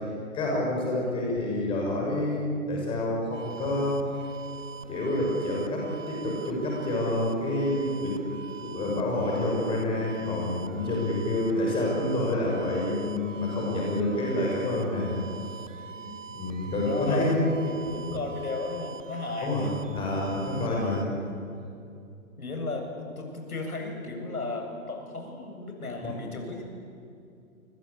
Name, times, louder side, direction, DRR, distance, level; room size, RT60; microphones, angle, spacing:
voice 1, 0.3-4.0 4.9-8.2 8.6-15.2 16.3-17.4 19.4-21.1, left 1 dB, 10° left, -2 dB, 6.4 m, -28 dB
sound 1, 3.3-21.0, right 6 dB, 60° right, 1.9 m, -44 dB
voice 2, 10.8-11.2 15.9-16.3 16.8-19.7 20.6-21.0 22.4-26.6, left 3 dB, 90° left, 3 dB, 7.9 m, -35 dB
30.0 x 23.5 x 8.5 m, 2.6 s
hypercardioid pair, 160°, 43 cm